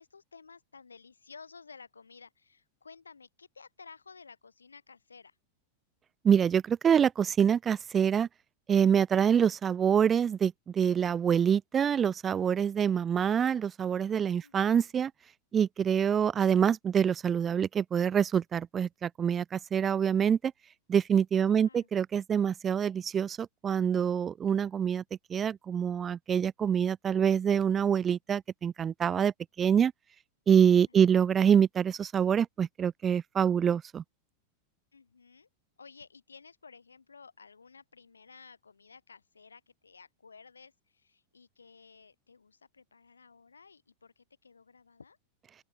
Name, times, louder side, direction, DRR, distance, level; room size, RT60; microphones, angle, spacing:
voice 1, 0.0-5.4 14.4-14.9 21.5-21.9 30.9-31.4 34.9-35.5 35.8-45.2, left 5 dB, 75° left, 6.2 m, -54 dB
voice 2, 6.2-8.3 8.7-15.1 15.5-20.4 20.9-25.0 25.3-29.3 29.6-29.9 30.5-34.0, right 8 dB, 25° right, 0.4 m, -26 dB
open air
figure-of-eight pair, 90°, 0 cm